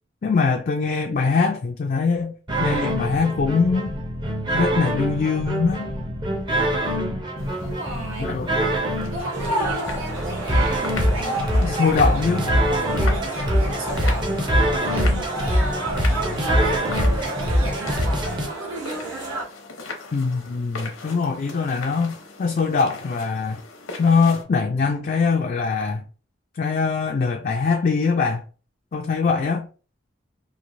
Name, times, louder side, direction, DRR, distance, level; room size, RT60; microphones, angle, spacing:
voice 1, 0.2-3.9 4.5-5.9 8.2-8.5 11.6-12.5 20.1-23.6 24.0-26.0 26.5-28.4 28.9-29.7, left 4 dB, 45° left, 0.3 m, -22 dB
sound 1, 2.5-18.5, equal, 20° right, 0.5 m, -24 dB
sound 2, 7.4-24.4, left 4 dB, 80° left, 0.8 m, -39 dB
voice 2, 7.6-8.3 9.1-12.0 12.7-19.2, right 1 dB, 85° right, 1.3 m, -35 dB
sound 3, 9.3-19.4, right 2 dB, 65° right, 1.3 m, -31 dB
3.1 x 2.5 x 2.6 m
head